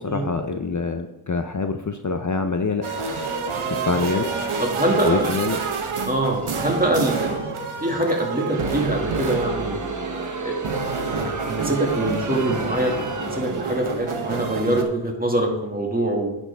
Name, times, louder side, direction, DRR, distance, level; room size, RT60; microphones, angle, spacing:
voice 1, 0.0-2.9 3.7-4.4 5.0-5.6, left 4 dB, 40° left, 7 dB, 0.6 m, -25 dB
sound 1, 2.8-14.8, right 4 dB, 85° right, 1.0 m, -28 dB
voice 2, 3.5-4.0 4.6-5.3 6.1-7.3 7.8-9.8 10.4-10.6 11.0-16.3, right 1 dB, 20° right, 0 dB, 1.9 m, -24 dB
Crowd, 8.3-14.0, right 3 dB, 40° right, 1.0 m, -32 dB
10.0 x 7.1 x 3.4 m, 0.92 s
wide cardioid pair, 50°, 48 cm